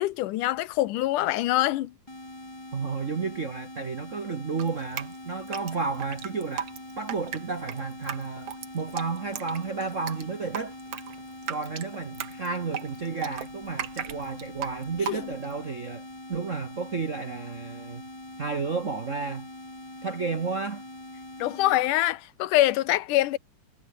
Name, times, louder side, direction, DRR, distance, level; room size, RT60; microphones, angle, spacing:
voice 1, 0.0-1.9 15.1-15.2 21.4-23.4, left 15 dB, 80° left, 2.4 m, -24 dB
sound 1, 2.1-21.8, left 1 dB, 10° left, 2.6 m, -43 dB
voice 2, 2.7-6.7 7.0-10.7 11.5-16.0 16.3-18.0 18.4-19.5 20.0-20.8, right 4 dB, 70° right, 0.7 m, -32 dB
Drip, 4.6-15.6, right 9 dB, 55° right, 2.3 m, -37 dB
omnidirectional pair, 3.6 m